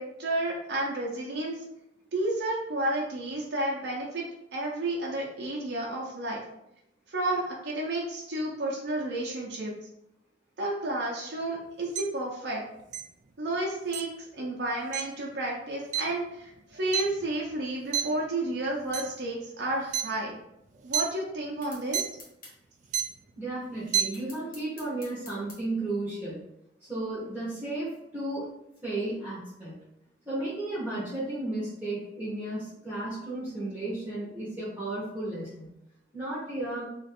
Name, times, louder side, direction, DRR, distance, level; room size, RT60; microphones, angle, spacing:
voice 1, 0.0-1.6 2.1-4.2 4.5-6.4 7.1-9.7 10.6-12.6 13.4-20.3 20.8-22.1, right 1 dB, 70° right, -3 dB, 0.7 m, -31 dB
sound 1, 12.0-12.1 12.9-13.0 13.9-14.0 14.9-15.0 15.9-16.0 16.5-17.6 17.9-18.2 18.8-19.2 19.9-20.0 20.7-21.0 21.9-22.0 22.8-23.2 23.8-24.0, right 8 dB, 40° right, 0.3 m, -28 dB
sound 2, 21.6-22.6 24.1-25.6, left 2 dB, 50° left, 1.2 m, -48 dB
voice 2, 23.4-26.4 26.9-28.5 28.8-29.7 30.3-35.7 36.1-36.8, right 2 dB, 10° right, -9 dB, 1.0 m, -34 dB
3.0 x 2.5 x 4.2 m, 0.82 s
head